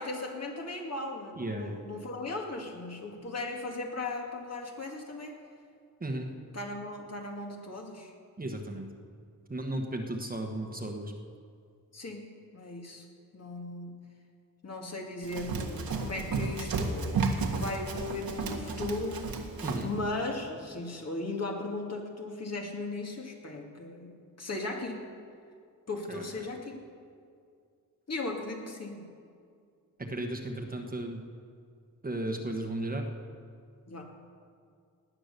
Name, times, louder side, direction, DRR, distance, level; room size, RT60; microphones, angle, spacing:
voice 1, 0.0-5.4 6.5-8.1 11.9-12.3 12.5-13.0 13.3-14.0 14.6-19.3 19.8-25.1 25.9-26.8 28.1-29.1 33.9-34.0, left 2 dB, 45° left, 1 dB, 2.1 m, -37 dB
voice 2, 1.4-1.8 6.0-6.3 8.4-8.9 9.5-11.1 19.6-19.9 26.1-26.2 30.0-31.2 32.0-33.1, right 1 dB, 25° right, 3 dB, 1.3 m, -35 dB
Run, 15.2-19.9, right 4 dB, 85° right, 1.7 m, -33 dB
18.5 x 9.8 x 6.8 m, 2.2 s
wide cardioid pair, 130°, 35 cm